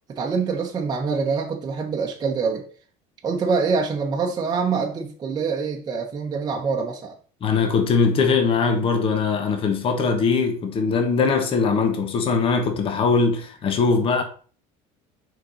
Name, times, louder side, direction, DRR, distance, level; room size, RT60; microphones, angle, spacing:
voice 1, 0.2-2.6 3.2-7.1, right 5 dB, 25° right, 1.0 m, -25 dB
voice 2, 7.4-14.2, left 4 dB, 35° left, 1.4 m, -21 dB
6.4 x 5.1 x 4.3 m
cardioid pair, 140°, 15 cm